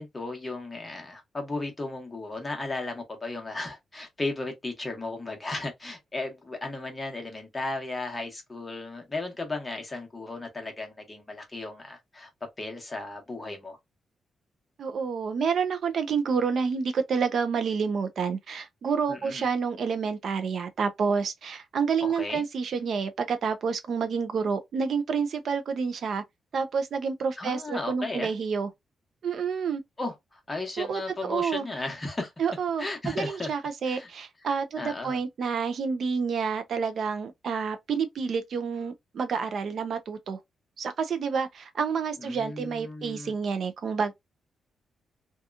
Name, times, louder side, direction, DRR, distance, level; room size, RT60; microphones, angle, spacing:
voice 1, 0.0-13.8 19.1-19.4 22.0-22.4 27.4-28.3 30.0-32.3 32.8-33.5 33.9-34.1 34.8-35.2 42.2-43.3, left 2 dB, 15° left, 0.9 m, -35 dB
voice 2, 14.8-26.2 26.5-28.7 29.2-29.8 30.8-31.7 32.4-40.4 40.8-44.1, right 6 dB, 55° right, 0.4 m, -29 dB
2.8 x 2.3 x 2.4 m
wide cardioid pair, 165°, 0 cm